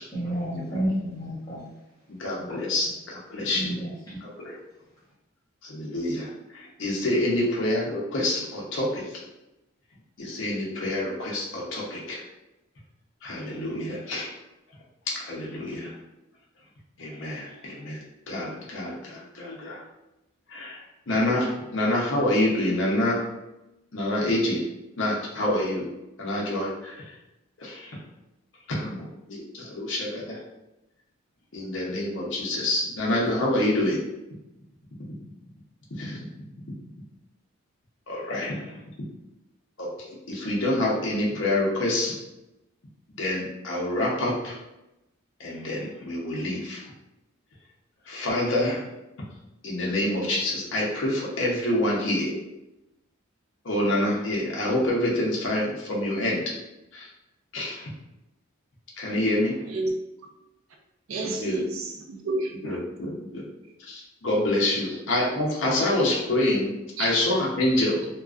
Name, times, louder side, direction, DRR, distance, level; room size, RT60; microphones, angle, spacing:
voice 1, 0.1-1.7 2.4-2.8 3.5-4.2, equal, 20° left, -9 dB, 0.8 m, -31 dB
voice 2, 2.1-3.7 4.2-4.5 5.6-9.1 10.2-12.2 13.2-14.3 15.1-15.9 17.0-19.8 20.5-23.2 23.9-24.6 25.0-25.9 26.2-27.0 27.6-28.0 28.7-30.4 31.5-34.0 36.0-36.2 38.1-38.8 39.8-39.9 40.3-42.2 43.2-44.6 45.4-46.8 48.1-48.9 49.6-52.3 53.6-56.4 56.9-57.1 57.5-57.9 59.0-59.6 61.2-61.6 62.6-63.5 63.9-66.7 67.0-68.0, left 1 dB, 60° left, -3 dB, 0.6 m, -27 dB
voice 3, 61.1-62.8 64.8-65.0 65.8-65.9 67.0-67.1, right 2 dB, 75° right, 1 dB, 0.5 m, -31 dB
2.4 x 2.2 x 2.3 m, 0.92 s
head